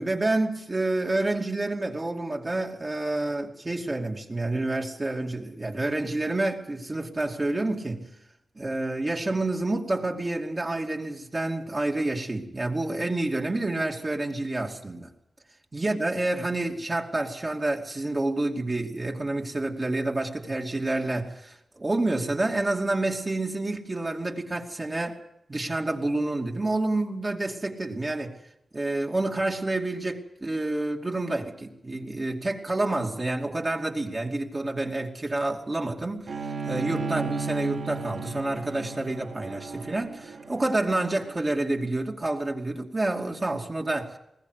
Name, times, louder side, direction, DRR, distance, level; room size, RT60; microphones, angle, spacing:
voice 1, 0.0-8.1 8.6-15.1 15.7-25.2 25.5-28.4 28.7-44.2, right 2 dB, 30° right, 2.6 m, -28 dB
Bowed string instrument, 36.3-41.6, right 4 dB, 75° right, 2.7 m, -35 dB
21.0 x 18.5 x 8.2 m
wide cardioid pair, 85°, 0 cm